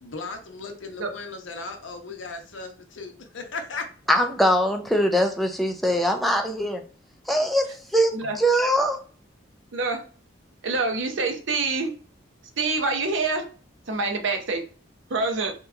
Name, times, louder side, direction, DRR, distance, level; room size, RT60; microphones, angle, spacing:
voice 1, 0.0-3.8, left 3 dB, 80° left, 4 dB, 0.6 m, -36 dB
voice 2, 4.1-6.8 7.3-9.0, equal, ahead, 3 dB, 0.3 m, -22 dB
voice 3, 9.7-10.0 10.6-11.9 12.6-13.5 13.9-14.6 15.1-15.5, right 3 dB, 85° right, 5 dB, 0.7 m, -26 dB
2.8 x 2.2 x 3.5 m, 0.40 s
head